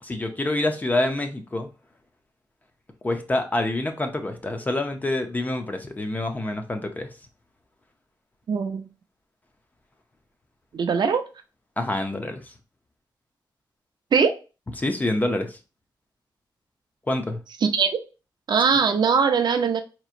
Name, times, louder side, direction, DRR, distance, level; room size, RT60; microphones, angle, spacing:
voice 1, 0.0-1.7 3.0-7.1 11.8-12.5 14.8-15.6 17.1-17.4, left 1 dB, 20° left, 5 dB, 0.5 m, -26 dB
voice 2, 8.5-8.9 10.7-11.2 14.1-14.3 17.6-17.9 18.5-19.8, right 6 dB, 65° right, 7 dB, 0.5 m, -21 dB
4.6 x 3.0 x 2.4 m, 0.31 s
wide cardioid pair, 175°, 8 cm